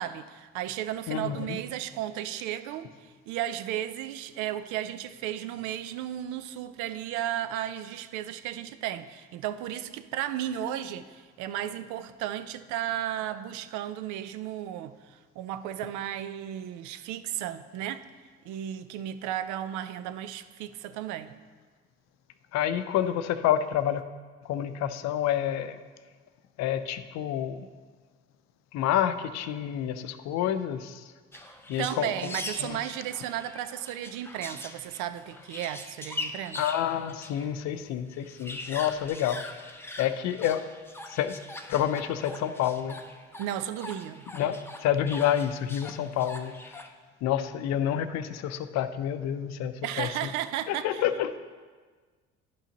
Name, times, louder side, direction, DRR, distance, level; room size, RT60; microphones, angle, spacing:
voice 1, 0.0-18.0 18.5-21.4 31.4-36.6 43.4-44.2 49.8-51.0, right 11 dB, 70° right, 0.5 m, -34 dB
voice 2, 1.1-1.6 22.5-24.0 24.4-25.8 26.6-27.7 28.7-31.1 31.7-32.3 32.6-32.8 36.5-39.4 40.0-40.6 41.1-41.4 41.7-43.0 44.3-46.8 47.2-50.3 50.7-51.4, left 10 dB, 60° left, 0.5 m, -28 dB
sound 1, 31.3-37.5 37.8-37.9 38.1-46.9, left 2 dB, 10° left, 0.6 m, -42 dB
11.0 x 5.7 x 2.9 m
hypercardioid pair, 65°, 30 cm